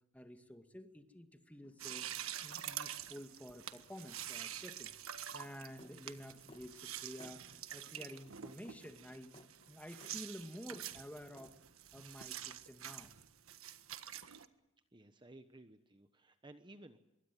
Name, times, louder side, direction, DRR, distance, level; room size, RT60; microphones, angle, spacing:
voice 1, 0.1-2.1 2.4-5.0 5.3-9.3 9.7-11.6 11.9-13.1, equal, 5° left, 6 dB, 2.1 m, -51 dB
sound 1, 1.6-9.7, left 2 dB, 85° left, 3.1 m, -71 dB
sound 2, 1.8-14.5, right 10 dB, 85° right, 1.5 m, -47 dB
sound 3, 5.8-6.0 6.5-6.7 7.2-7.4 8.0-8.1 8.6-8.8 9.3-9.5 10.0-10.2 10.7-10.9 11.4-11.5, left 1 dB, 30° left, 2.4 m, -57 dB
voice 2, 14.9-17.0, right 1 dB, 20° right, 9 dB, 1.1 m, -57 dB
25.5 x 23.5 x 9.2 m, 0.94 s
head